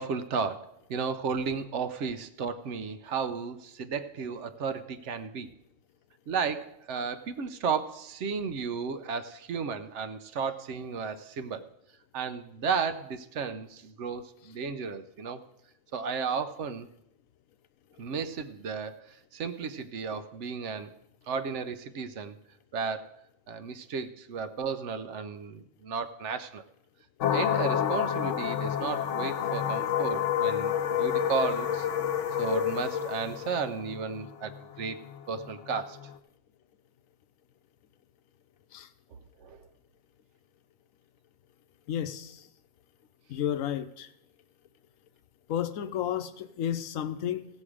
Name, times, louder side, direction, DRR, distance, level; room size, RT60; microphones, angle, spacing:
voice 1, 0.0-5.5 6.3-11.7 12.1-15.4 15.9-16.9 18.0-20.9 21.3-22.4 22.7-23.1 23.5-26.6 27.3-30.7 31.0-31.9 32.4-35.0 35.3-36.1 39.4-39.6, right 5 dB, 65° right, 11 dB, 1.0 m, -33 dB
sound 1, 27.2-36.1, left 9 dB, 70° left, 0.9 m, -29 dB
voice 2, 41.9-42.5 43.3-44.1 45.5-47.5, left 10 dB, 90° left, 11 dB, 1.1 m, -32 dB
16.0 x 7.4 x 4.9 m, 0.79 s
omnidirectional pair, 1.4 m